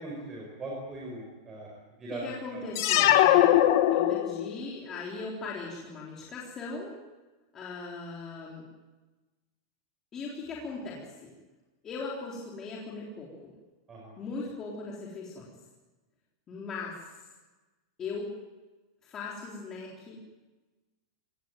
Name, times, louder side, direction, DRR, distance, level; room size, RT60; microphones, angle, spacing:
voice 1, 0.0-1.7 2.0-2.2 2.5-2.6 13.9-14.1, right 2 dB, 15° right, -3 dB, 5.5 m, -40 dB
voice 2, 2.1-3.5 3.9-7.0 7.5-8.6 10.1-11.3 11.8-13.5 14.2-15.5 16.5-17.2 18.0-18.3 19.0-20.2, left 3 dB, 15° left, -4 dB, 3.6 m, -39 dB
sound 1, 2.7-4.6, left 13 dB, 50° left, 1.7 m, -21 dB
24.5 x 18.5 x 9.3 m, 1.2 s
supercardioid pair, 180°, 2 cm